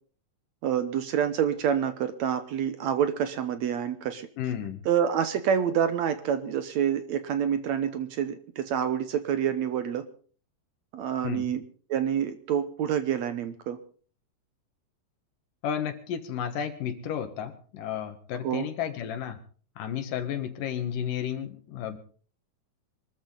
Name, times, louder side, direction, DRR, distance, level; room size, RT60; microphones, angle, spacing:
voice 1, 0.6-4.3 4.9-10.1 10.9-11.6 11.9-13.8 18.4-18.7, right 8 dB, 70° right, 10 dB, 1.9 m, -27 dB
voice 2, 4.4-4.8 11.2-11.5 15.6-19.4 19.8-22.0, left 9 dB, 75° left, 8 dB, 3.1 m, -32 dB
23.5 x 13.5 x 3.9 m, 0.42 s
omnidirectional pair, 4.0 m